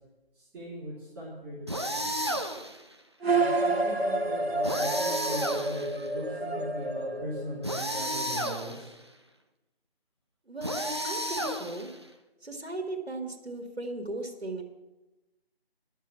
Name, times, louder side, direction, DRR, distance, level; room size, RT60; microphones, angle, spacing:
voice 1, 0.3-2.1 3.3-8.9, equal, 5° right, -13 dB, 2.3 m, -40 dB
sound 1, 1.7-2.8 4.6-6.1 7.6-8.9 10.6-12.0, equal, 25° right, 0.5 m, -32 dB
sound 2, 3.2-8.0, right 2 dB, 75° right, 1.6 m, -29 dB
voice 2, 10.5-11.9 12.4-14.6, right 2 dB, 90° right, 2 dB, 2.1 m, -37 dB
12.0 x 7.4 x 7.1 m, 1.0 s
figure-of-eight pair, 160°, 31 cm